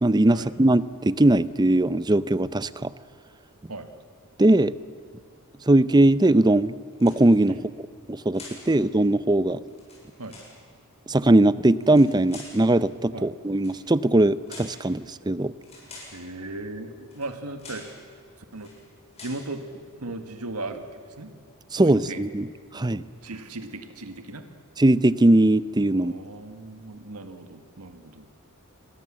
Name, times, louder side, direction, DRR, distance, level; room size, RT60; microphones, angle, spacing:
voice 1, 0.0-2.9 4.4-4.7 5.7-6.7 7.0-7.6 8.1-9.6 11.1-15.5 21.7-22.5 22.7-23.0 24.8-26.1, right 1 dB, 20° right, 17 dB, 0.6 m, -20 dB
sound 1, 6.9-7.5 8.3-8.7 9.7-10.6 11.8-12.6 13.5-13.8 14.5-14.8 15.6-16.2 17.1-17.3 17.6-18.0 18.5-18.8 19.1-19.5, left 3 dB, 30° left, 7.3 m, -45 dB
voice 2, 16.1-17.9 18.5-18.7 19.2-19.6 20.0-20.9 21.2-21.3 21.7-22.2 22.7-24.4 25.9-28.3, right 2 dB, 90° right, 8 dB, 1.8 m, -37 dB
27.5 x 22.0 x 7.5 m, 2.2 s
head